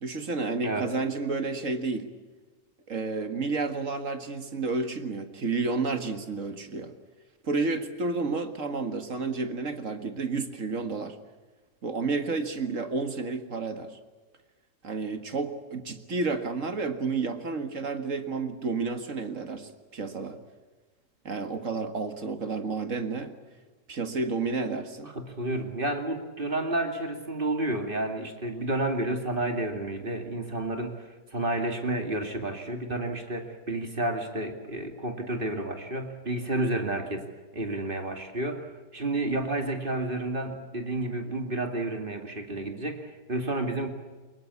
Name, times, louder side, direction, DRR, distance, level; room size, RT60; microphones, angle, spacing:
voice 1, 0.0-2.1 2.9-6.9 7.4-11.2 11.8-14.0 14.8-20.4 21.3-23.3 23.9-25.1, right 4 dB, 45° right, 8 dB, 2.0 m, -31 dB
voice 2, 25.1-37.2 37.5-43.9, right 1 dB, 30° right, 5 dB, 2.6 m, -31 dB
23.5 x 21.5 x 8.4 m, 1.3 s
omnidirectional pair, 1.9 m